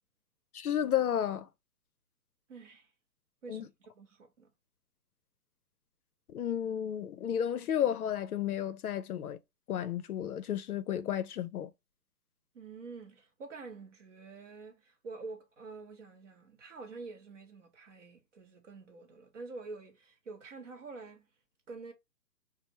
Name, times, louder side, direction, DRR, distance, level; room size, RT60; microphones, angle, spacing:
voice 1, 0.5-1.5 3.5-3.6 6.3-9.4 9.7-11.7, left 10 dB, 60° left, 0.5 m, -32 dB
voice 2, 2.5-2.9 3.4-4.5 12.5-21.3 21.7-21.9, right 4 dB, 45° right, 1.0 m, -47 dB
4.2 x 2.0 x 2.8 m
hypercardioid pair, 155°, 50 cm